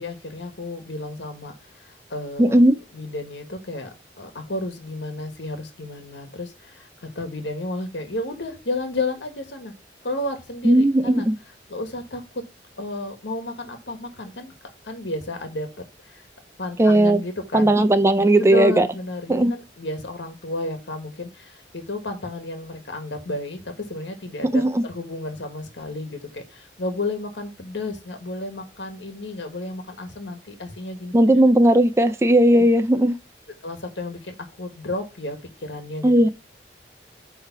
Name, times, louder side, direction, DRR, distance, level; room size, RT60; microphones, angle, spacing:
voice 1, 0.0-2.6 2.9-3.9 4.2-9.7 10.0-11.3 11.7-12.4 12.8-14.5 14.8-16.3 16.6-17.7 18.3-31.1 32.5-32.6 33.6-36.3, left 2 dB, 85° left, 1.4 m, -32 dB
voice 2, 2.4-2.8 10.6-11.4 16.8-17.2 17.5-18.9 19.3-19.5 24.5-24.8 31.1-33.1 36.0-36.3, right 1 dB, 15° right, 0.4 m, -16 dB
9.0 x 3.3 x 5.8 m
head